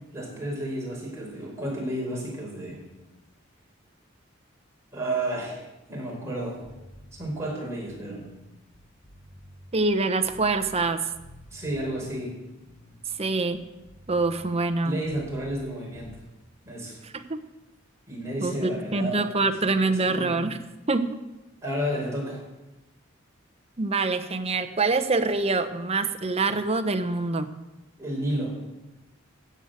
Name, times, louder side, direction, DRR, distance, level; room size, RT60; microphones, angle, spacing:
voice 1, 0.1-2.9 4.9-6.6 7.1-8.3 11.5-12.4 14.8-16.2 16.6-17.0 18.1-20.3 21.6-22.4 28.0-28.6, right 1 dB, 15° right, -3 dB, 5.0 m, -32 dB
sound 1, 6.6-7.2 7.7-10.9 11.1-12.0 12.5-15.7 15.9-16.2, left 1 dB, 40° left, 6.1 m, -50 dB
voice 2, 9.7-11.0 13.2-13.6 14.1-15.0 17.0-17.4 18.4-20.6 20.9-21.2 23.8-27.5, right 3 dB, 30° right, 8 dB, 1.0 m, -25 dB
14.0 x 8.2 x 8.0 m, 1.0 s
head